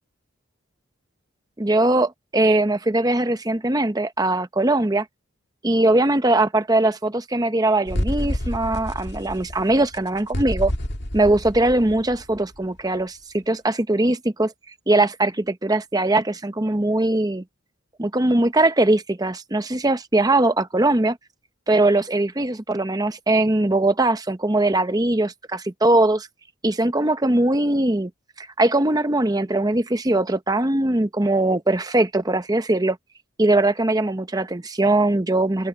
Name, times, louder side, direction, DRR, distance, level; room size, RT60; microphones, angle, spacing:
voice 1, 1.6-5.1 5.6-10.7 11.1-14.5 14.9-17.4 18.0-21.2 21.7-26.3 26.6-28.1 28.4-33.0 33.4-35.7, right 2 dB, 20° right, 0.8 m, -21 dB
sound 1, 7.9-12.6, equal, 55° left, 2.6 m, -29 dB
open air
head